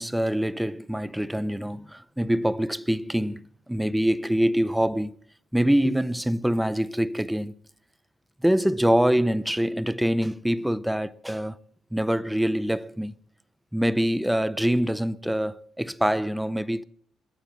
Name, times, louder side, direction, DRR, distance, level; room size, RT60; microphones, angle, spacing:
voice 1, 0.0-5.1 5.5-7.6 8.4-11.6 11.9-13.1 13.7-16.8, equal, 5° right, 0.6 m, -25 dB
21.0 x 9.0 x 7.4 m
cardioid pair, 90°, 0 cm